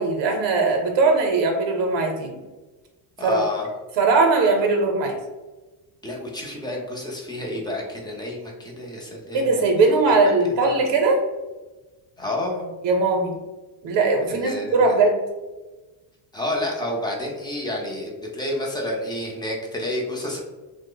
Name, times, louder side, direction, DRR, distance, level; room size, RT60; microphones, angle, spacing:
voice 1, 0.0-2.4 3.2-3.4 4.0-5.2 9.3-11.2 12.8-13.4 13.8-15.2, right 3 dB, 65° right, 3 dB, 0.6 m, -20 dB
voice 2, 3.2-3.7 6.0-9.6 10.6-10.8 12.2-12.7 14.3-15.0 16.3-20.4, left 1 dB, 10° left, -1 dB, 0.4 m, -29 dB
3.0 x 2.0 x 3.7 m, 1.2 s
cardioid pair, 140°, 47 cm